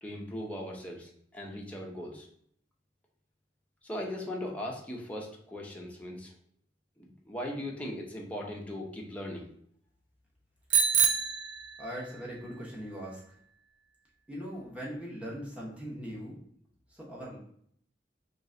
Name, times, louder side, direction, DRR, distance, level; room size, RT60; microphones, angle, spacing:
voice 1, 0.0-2.3 3.8-6.3 7.0-9.5, left 1 dB, 10° left, -2 dB, 0.7 m, -39 dB
Bicycle bell, 10.7-12.3, right 7 dB, 70° right, 0.4 m, -27 dB
voice 2, 11.8-13.2 14.3-16.4 16.9-17.4, equal, 5° right, -5 dB, 1.1 m, -40 dB
3.2 x 3.1 x 3.7 m, 0.64 s
head